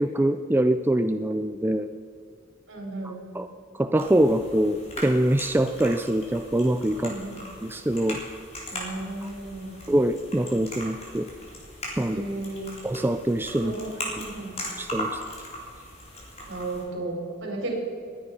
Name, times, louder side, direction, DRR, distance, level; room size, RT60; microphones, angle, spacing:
voice 1, 0.0-1.9 3.3-3.5 3.7-7.1 7.6-8.2 9.9-11.3 12.0-12.2 12.8-13.7 14.8-15.2, right 1 dB, 10° right, 8 dB, 0.4 m, -24 dB
voice 2, 2.7-3.2 6.9-7.4 8.7-9.8 12.1-12.8 13.6-13.9 14.1-14.5 16.5-17.8, right 2 dB, 70° right, 0 dB, 4.7 m, -34 dB
sound 1, 4.0-16.8, left 1 dB, 35° left, 4.0 m, -39 dB
20.5 x 9.6 x 5.6 m, 2.4 s
head